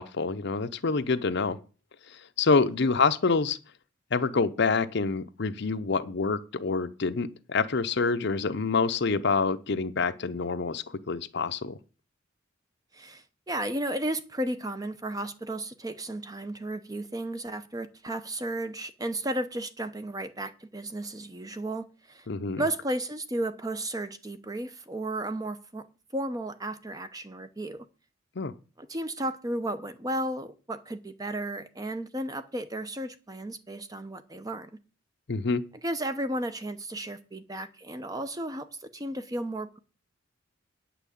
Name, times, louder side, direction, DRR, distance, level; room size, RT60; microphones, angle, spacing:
voice 1, 0.0-1.6 2.1-3.6 4.1-11.8 22.3-22.6 28.4-28.5 35.3-35.6, left 4 dB, 60° left, 0.7 m, -27 dB
voice 2, 12.9-22.3 22.6-25.8 26.1-27.9 28.8-34.7 35.8-39.8, right 1 dB, 20° right, 0.8 m, -34 dB
9.1 x 6.0 x 8.4 m
head